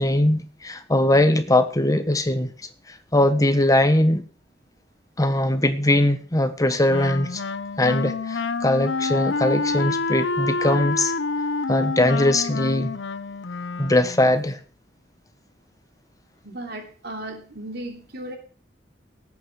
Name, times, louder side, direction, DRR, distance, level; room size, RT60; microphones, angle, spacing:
voice 1, 0.0-2.5 2.9-4.2 5.2-7.4 7.8-11.1 11.7-12.9 13.8-14.6, left 1 dB, 20° left, 10 dB, 1.2 m, -21 dB
Wind instrument woodwind instrument, 6.9-14.3, left 3 dB, 85° left, 0.7 m, -27 dB
voice 2, 16.4-18.4, right 1 dB, 60° right, 3 dB, 3.2 m, -35 dB
18.5 x 8.6 x 4.7 m, 0.39 s
head